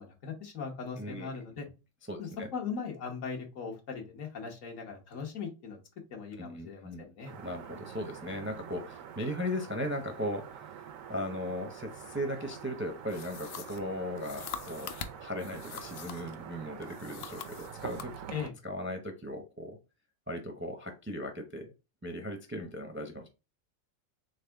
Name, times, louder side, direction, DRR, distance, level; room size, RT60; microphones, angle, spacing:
voice 1, 0.0-1.7 2.2-5.8 6.1-7.3 18.3-18.5, left 5 dB, 80° left, 2 dB, 1.5 m, -39 dB
voice 2, 1.0-1.3 2.1-2.5 6.4-7.0 7.3-10.6 11.1-14.9 15.2-18.1 18.6-19.8 20.3-21.7 22.0-23.3, left 1 dB, 15° right, 5 dB, 0.4 m, -37 dB
sound 1, 7.2-18.5, right 8 dB, 90° right, 1.1 m, -46 dB
sound 2, 13.1-16.4 16.8-18.1, left 8 dB, 65° left, 0.7 m, -44 dB
4.1 x 3.4 x 3.4 m, 0.30 s
omnidirectional pair, 1.3 m